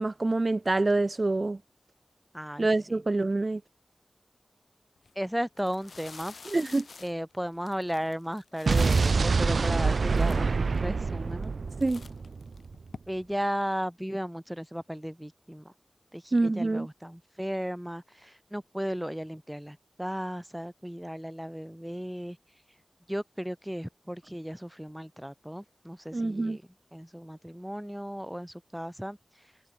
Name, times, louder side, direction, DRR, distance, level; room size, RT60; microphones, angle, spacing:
voice 1, 0.0-1.6 2.6-3.6 6.4-6.9 11.8-12.0 16.3-16.9 26.1-26.6, right 2 dB, 45° right, 3.1 m, -26 dB
voice 2, 2.3-2.7 5.2-6.3 7.0-11.5 13.1-15.6 16.1-18.0 18.5-22.4 23.1-26.6 26.9-29.2, equal, 5° right, 5.4 m, -35 dB
sound 1, 5.0-5.1 5.6-9.3 9.9-10.0 10.1-10.8 11.3-11.6 11.8-13.0, left 4 dB, 90° left, 7.3 m, -47 dB
Explosion, 8.7-12.7, right 4 dB, 85° right, 3.2 m, -26 dB
cardioid pair, 50°, 0 cm